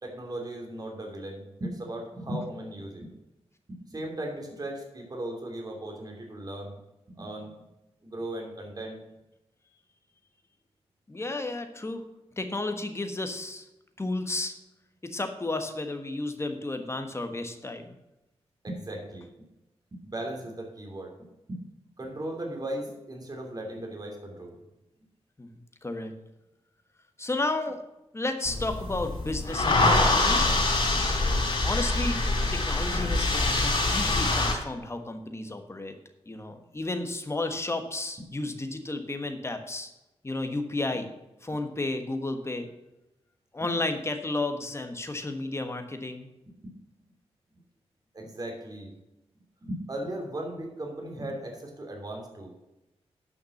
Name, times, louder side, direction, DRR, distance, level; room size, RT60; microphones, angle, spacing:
voice 1, 0.0-3.1 3.9-6.7 7.1-7.5 8.0-9.0 18.6-19.3 19.9-21.1 21.5-21.6 22.0-24.5 46.6-46.7 48.1-48.9 49.6-52.5, right 1 dB, 35° right, 1 dB, 2.9 m, -37 dB
voice 2, 11.1-12.1 12.4-13.7 14.0-14.5 15.0-17.9 25.4-25.5 25.8-26.1 27.2-27.8 28.1-30.4 31.6-32.2 32.5-35.9 36.3-39.9 40.2-41.1 41.4-42.7 43.5-46.3, left 2 dB, 25° left, 6 dB, 1.4 m, -32 dB
sound 1, 28.5-34.5, left 2 dB, 50° left, 3.5 m, -24 dB
9.5 x 5.8 x 7.2 m, 0.94 s
wide cardioid pair, 95°, 11 cm